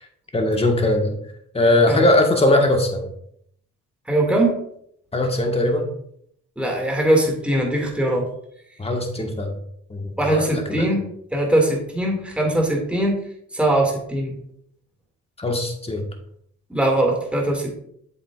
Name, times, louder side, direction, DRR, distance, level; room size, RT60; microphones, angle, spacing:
voice 1, 0.3-1.2 1.5-3.1 5.1-5.9 8.8-9.5 9.9-10.9 15.4-16.0, left 1 dB, 20° left, 2 dB, 1.6 m, -20 dB
voice 2, 4.1-4.5 6.6-8.3 10.2-11.0 11.3-13.2 13.5-14.4 16.7-17.8, right 1 dB, 5° right, -1 dB, 2.2 m, -21 dB
7.7 x 7.6 x 2.5 m, 0.69 s
cardioid pair, 90°, 30 cm